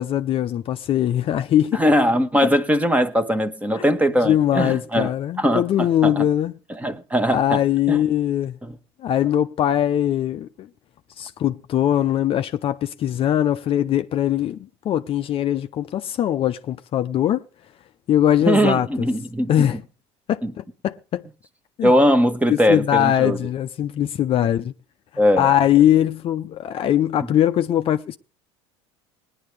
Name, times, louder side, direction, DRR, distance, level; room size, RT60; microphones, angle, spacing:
voice 1, 0.0-1.8 3.7-3.8 4.2-6.5 7.3-8.6 9.0-10.5 11.2-14.6 14.8-17.4 18.1-19.1 19.5-19.8 20.3-21.2 21.8-21.9 22.5-24.7 25.4-28.2, left 11 dB, 40° left, 0.6 m, -21 dB
voice 2, 1.7-5.1 5.4-6.3 6.8-8.0 8.6-8.7 18.4-19.5 20.4-20.5 21.8-23.4 25.2-25.5, equal, 10° right, 1.2 m, -20 dB
18.5 x 10.5 x 3.3 m
supercardioid pair, 100°, 14 cm